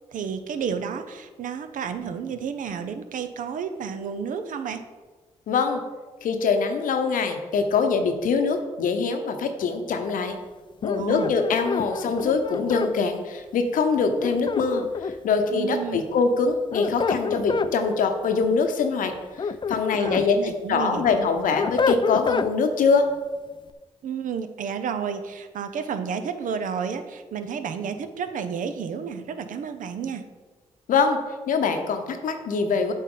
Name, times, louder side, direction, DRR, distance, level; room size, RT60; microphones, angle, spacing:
voice 1, 0.1-4.8 10.9-11.3 15.5-16.0 20.0-21.3 24.0-30.2, right 6 dB, 70° right, 9 dB, 0.6 m, -31 dB
voice 2, 5.5-5.8 6.2-10.4 10.8-19.1 19.4-20.4 20.7-23.0 30.9-31.2 31.5-32.9, left 5 dB, 75° left, 6 dB, 0.8 m, -23 dB
sound 1, 10.8-12.9 14.2-15.3 16.5-17.7 19.1-20.3 20.7-22.5, left 5 dB, 35° left, 0.4 m, -27 dB
8.0 x 4.3 x 3.9 m, 1.3 s
supercardioid pair, 45°, 14 cm